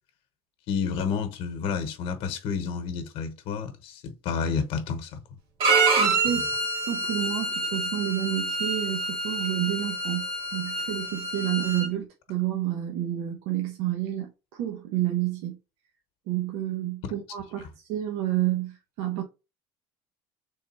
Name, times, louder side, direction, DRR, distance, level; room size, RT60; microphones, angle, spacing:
voice 1, 0.7-5.2 6.2-6.4, left 6 dB, 60° left, 1.0 m, -30 dB
Bowed string instrument, 5.6-11.9, right 3 dB, 50° right, 1.6 m, -27 dB
voice 2, 6.0-15.6 16.3-19.2, right 13 dB, 85° right, 0.9 m, -30 dB
3.7 x 3.3 x 4.2 m
cardioid pair, 155°, 11 cm